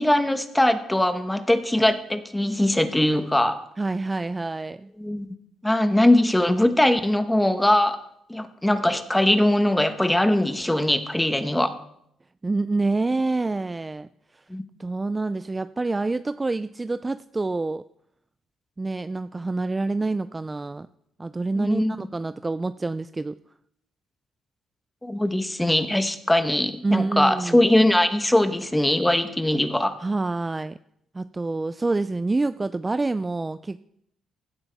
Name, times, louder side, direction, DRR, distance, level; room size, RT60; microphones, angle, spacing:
voice 1, 0.0-3.6 5.0-5.3 5.6-8.0 8.3-11.7 14.5-14.6 21.5-21.9 25.0-30.0, left 1 dB, 10° left, 9 dB, 1.1 m, -21 dB
voice 2, 3.8-4.9 12.4-14.1 14.3-14.4 14.8-17.8 18.8-20.9 21.2-23.4 26.8-27.6 30.0-30.8 31.1-33.8, right 3 dB, 20° right, 13 dB, 0.3 m, -27 dB
16.0 x 11.5 x 3.5 m, 0.75 s
cardioid pair, 90°, 0 cm